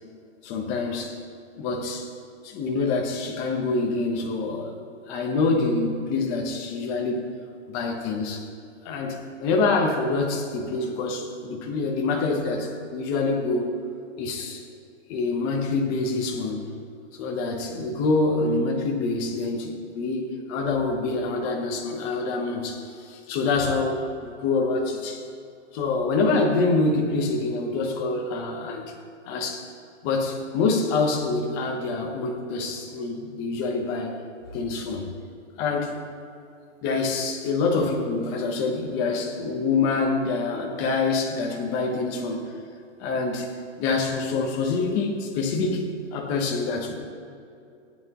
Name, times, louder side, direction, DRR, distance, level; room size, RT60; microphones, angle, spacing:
voice 1, 0.4-1.2 1.6-2.1 2.4-4.7 5.1-7.3 7.7-8.4 8.8-13.7 14.2-14.6 15.1-16.7 17.2-20.2 20.5-22.8 23.1-25.2 25.7-28.9 29.3-29.6 30.0-34.2 34.5-35.1 35.6-36.0 36.8-42.4 43.0-43.5 43.8-47.0, left 3 dB, 20° left, 1 dB, 1.0 m, -26 dB
17.5 x 9.1 x 3.0 m, 2.5 s
hypercardioid pair, 170°, 38 cm